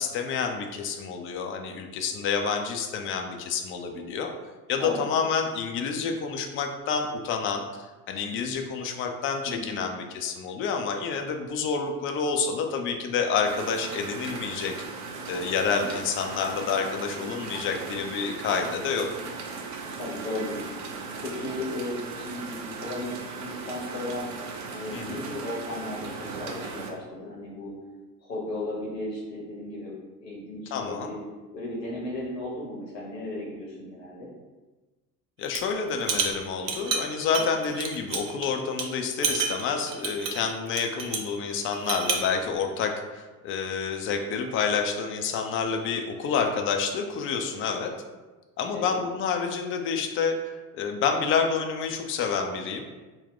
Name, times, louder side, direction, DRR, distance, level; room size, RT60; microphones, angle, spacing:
voice 1, 0.0-4.3 4.7-14.7 15.3-19.1 24.9-25.2 30.7-31.1 35.4-47.9 48.6-52.8, left 5 dB, 30° left, 4 dB, 0.4 m, -28 dB
voice 2, 9.4-9.8 19.9-20.7 21.2-24.3 24.7-27.7 28.2-29.9 30.2-31.2 31.5-34.3 48.7-49.0, left 1 dB, 80° left, -4 dB, 1.2 m, -35 dB
sound 1, 13.4-26.9, right 4 dB, 40° right, 0.6 m, -38 dB
sound 2, 35.4-35.7 36.0-38.5 38.8-38.9 39.2-41.3 41.7-42.3, right 5 dB, 75° right, 0.7 m, -29 dB
3.8 x 2.2 x 3.7 m, 1.2 s
figure-of-eight pair, 70°, 48 cm